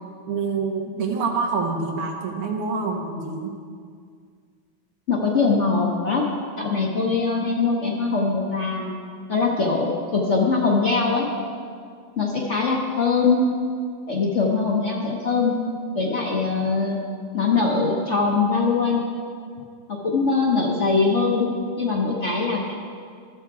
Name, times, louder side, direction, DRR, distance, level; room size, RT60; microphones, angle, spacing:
voice 1, 0.3-3.5, right 4 dB, 90° right, 2 dB, 2.0 m, -26 dB
voice 2, 5.1-6.2 6.6-8.9 9.3-11.3 12.2-13.4 14.1-15.6 15.9-17.0 17.3-19.0 19.9-21.5 21.8-22.7, left 4 dB, 50° left, -2 dB, 0.9 m, -22 dB
13.0 x 7.0 x 4.7 m, 2.1 s
omnidirectional pair, 2.4 m